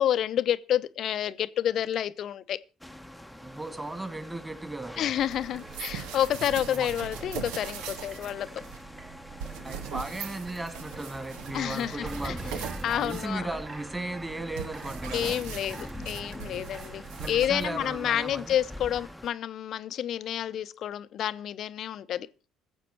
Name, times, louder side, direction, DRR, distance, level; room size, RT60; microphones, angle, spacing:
voice 1, 0.0-2.6 5.0-8.6 11.5-12.4 12.8-13.6 15.1-22.3, left 10 dB, 55° left, 0.7 m, -29 dB
sound 1, 2.8-19.3, equal, ahead, 1.0 m, -44 dB
voice 2, 3.4-5.1 6.6-6.9 9.6-15.4 17.1-18.5, right 2 dB, 15° right, 2.8 m, -36 dB
sound 2, 4.8-19.1, right 3 dB, 35° right, 4.9 m, -50 dB
sound 3, 5.2-17.9, right 8 dB, 65° right, 0.9 m, -41 dB
20.5 x 7.6 x 4.6 m
figure-of-eight pair, 50°, 0 cm